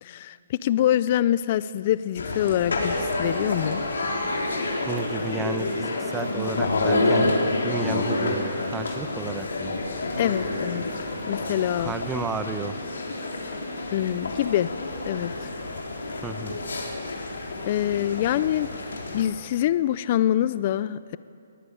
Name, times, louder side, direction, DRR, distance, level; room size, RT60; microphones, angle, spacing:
voice 1, 0.0-3.8 10.2-10.8 11.3-11.9 13.9-14.7 15.1-15.5 17.7-18.7 19.1-21.2, left 12 dB, 35° left, 16 dB, 0.4 m, -25 dB
sound 1, 2.2-19.2, left 2 dB, 85° left, 3.9 m, -28 dB
voice 2, 4.9-7.3 7.6-8.4 8.6-9.7 11.8-12.8 16.2-16.6, right 4 dB, 10° right, 9 dB, 0.8 m, -32 dB
22.0 x 14.0 x 8.6 m, 2.5 s
hypercardioid pair, 160°, 0 cm